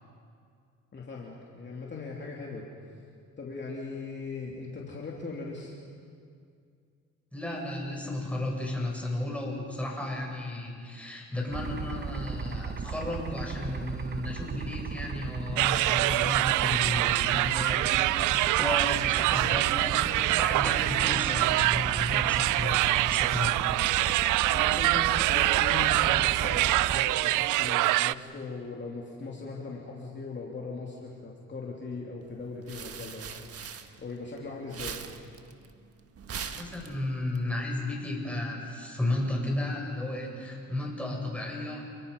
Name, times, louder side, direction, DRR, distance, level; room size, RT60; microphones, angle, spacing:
voice 1, 0.9-2.6 3.4-5.7 24.5-33.3 34.0-35.0, left 3 dB, 35° left, -3 dB, 3.1 m, -39 dB
voice 2, 7.3-23.6 36.5-41.8, left 1 dB, 5° left, -2 dB, 7.6 m, -34 dB
sound 1, 11.5-27.0, right 6 dB, 35° right, 1.2 m, -36 dB
sound 2, 15.6-28.1, right 17 dB, 85° right, 0.5 m, -25 dB
sound 3, 32.3-34.4 34.7-37.4, right 7 dB, 50° right, 1.5 m, -41 dB
29.5 x 22.5 x 5.5 m, 2.3 s
cardioid pair, 90°, 30 cm